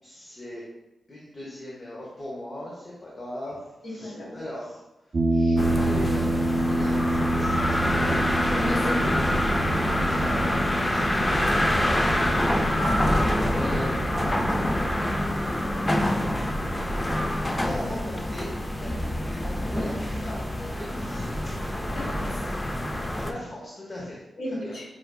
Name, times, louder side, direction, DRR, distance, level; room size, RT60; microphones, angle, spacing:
voice 1, 0.0-0.7 1.1-8.3 9.7-13.9 17.6-21.5 23.2-24.7, left 1 dB, 45° left, -5 dB, 0.9 m, -40 dB
voice 2, 3.8-4.4 8.5-9.2 13.4-13.7 21.9-22.3 24.4-24.8, left 1 dB, 80° left, -3 dB, 1.4 m, -33 dB
sound 1, 5.1-18.2, right 1 dB, 50° right, 0.5 m, -29 dB
sound 2, 5.6-23.3, left 1 dB, 20° left, 0.4 m, -26 dB
7.5 x 2.6 x 2.3 m, 0.97 s
cardioid pair, 55°, 0 cm